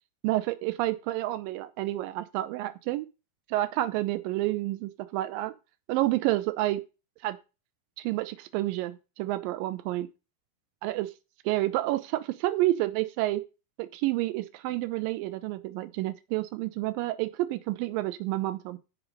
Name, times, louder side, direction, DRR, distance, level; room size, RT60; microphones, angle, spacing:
voice 1, 0.2-3.1 3.5-5.5 5.9-6.8 7.2-7.4 8.0-10.1 10.8-11.1 11.5-13.4 13.8-18.8, right 16 dB, 90° right, 2.5 m, -29 dB
7.9 x 5.2 x 6.5 m
omnidirectional pair, 3.9 m